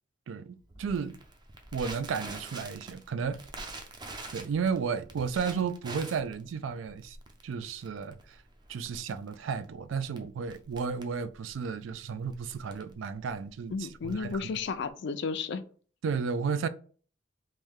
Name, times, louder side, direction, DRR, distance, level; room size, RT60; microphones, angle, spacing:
voice 1, 0.3-1.2 1.7-3.4 4.3-7.2 7.4-8.4 8.7-14.5 16.0-16.7, right 6 dB, 80° right, 0.3 m, -33 dB
Crackle, 0.7-14.9, right 2 dB, 25° right, 0.5 m, -46 dB
voice 2, 13.7-15.6, left 5 dB, 65° left, 0.4 m, -33 dB
3.3 x 2.7 x 3.5 m
head